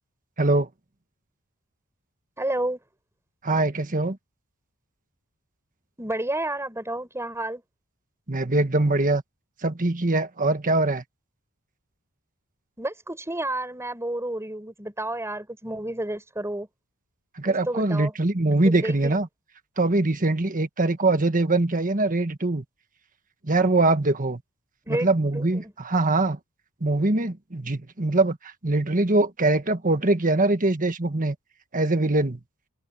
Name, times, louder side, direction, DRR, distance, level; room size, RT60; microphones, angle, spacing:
voice 1, 0.4-0.7 3.4-4.2 8.3-9.2 9.6-11.0 17.4-19.3 19.8-22.6 23.4-24.4 24.9-26.4 26.8-31.3 31.7-32.4, right 2 dB, 35° right, 1.6 m, -23 dB
voice 2, 2.4-2.8 6.0-7.6 12.8-16.7 17.5-18.1 18.6-19.2 24.9-25.1 25.3-25.7, right 1 dB, 10° right, 7.0 m, -30 dB
head